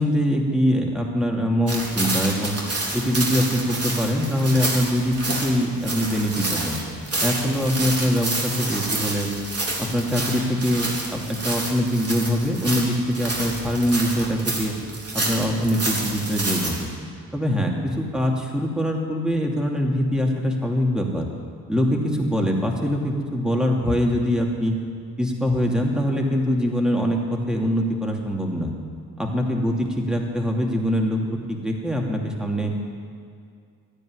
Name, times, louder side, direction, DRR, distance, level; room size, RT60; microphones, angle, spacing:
voice 1, 0.0-2.6 2.9-6.8 7.2-9.3 9.8-14.7 15.1-16.9 17.3-21.3 21.7-24.8 25.2-28.7 29.2-31.2 31.5-32.7, equal, ahead, 0 dB, 2.8 m, -23 dB
sound 1, 1.7-16.8, right 2 dB, 35° right, 3.7 m, -28 dB
12.5 x 10.0 x 9.8 m, 2.3 s
cardioid pair, 60°, 39 cm